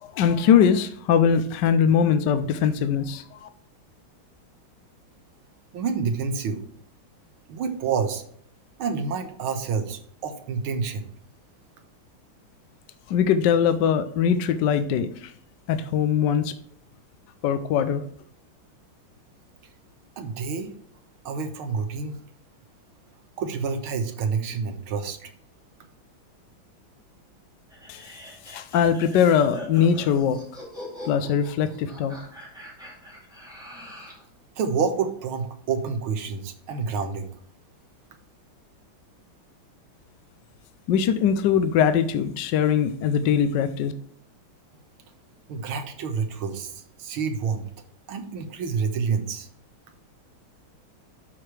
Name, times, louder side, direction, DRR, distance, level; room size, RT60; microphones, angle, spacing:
voice 1, 0.0-3.5 13.1-15.3 15.7-16.5 17.4-18.0 27.9-28.1 28.5-30.4 31.1-32.1 40.9-43.9, left 8 dB, 70° left, 11 dB, 1.1 m, -21 dB
voice 2, 5.7-6.6 7.5-8.2 8.8-11.1 20.2-20.7 21.3-22.2 23.4-25.3 34.6-37.3 45.5-47.7 48.1-49.5, right 5 dB, 85° right, 6 dB, 1.9 m, -28 dB
sound 1, 27.7-34.3, left 1 dB, ahead, 2.2 m, -43 dB
12.0 x 4.8 x 3.2 m, 0.63 s
omnidirectional pair, 2.2 m